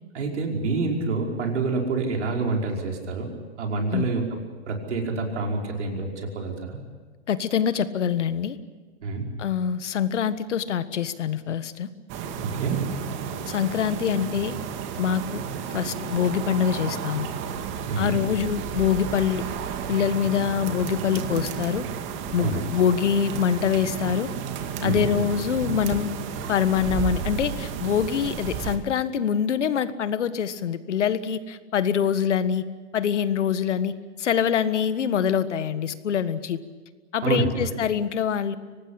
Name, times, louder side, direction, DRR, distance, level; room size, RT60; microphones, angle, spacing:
voice 1, 0.1-3.3 3.6-4.2 4.7-6.8 9.0-9.2 12.4-12.8 17.9-18.2 22.4-22.7 24.8-25.0 37.2-37.7, right 3 dB, 80° right, 1 dB, 5.4 m, -27 dB
voice 2, 7.3-8.6 9.4-11.9 13.5-14.6 15.0-15.4 15.7-17.3 18.0-19.4 19.9-21.8 22.3-24.3 24.8-26.1 26.5-32.6 32.9-36.6 37.1-38.6, left 8 dB, 80° left, 13 dB, 1.6 m, -24 dB
sound 1, 12.1-28.8, right 7 dB, 35° right, 2.3 m, -32 dB
24.5 x 19.0 x 8.7 m, 1.4 s
hypercardioid pair, 135°, 35 cm